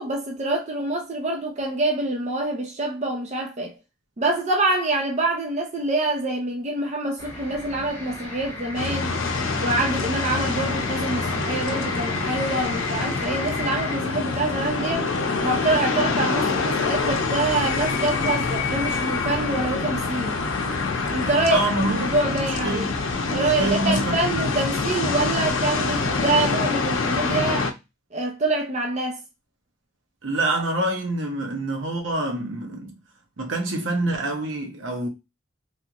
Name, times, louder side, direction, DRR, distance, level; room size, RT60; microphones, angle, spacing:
voice 1, 0.0-3.7 4.2-9.1 9.5-15.1 15.4-20.4 21.1-22.9 23.3-27.7 28.1-29.2, right 2 dB, 35° right, 0.6 m, -26 dB
sound 1, 7.2-14.0, left 2 dB, 15° left, 1.4 m, -35 dB
sound 2, 8.7-27.7, left 4 dB, 85° left, 0.6 m, -26 dB
voice 2, 21.5-23.0 23.3-24.2 30.2-32.9 33.4-35.1, right 1 dB, 70° right, 0.9 m, -26 dB
3.2 x 2.5 x 2.8 m
head